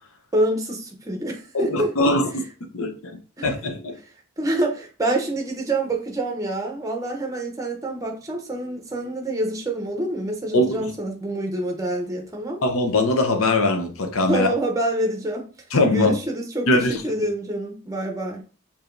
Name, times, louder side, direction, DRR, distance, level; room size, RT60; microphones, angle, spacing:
voice 1, 0.3-1.9 3.4-3.5 4.4-12.6 14.3-15.5 15.9-18.4, right 1 dB, 15° right, 0.6 m, -26 dB
voice 2, 1.5-2.4 2.7-2.9 3.4-4.0 10.5-10.9 12.6-14.5 15.7-16.2 16.7-17.0, left 2 dB, 70° left, 0.7 m, -21 dB
4.7 x 2.7 x 2.5 m
head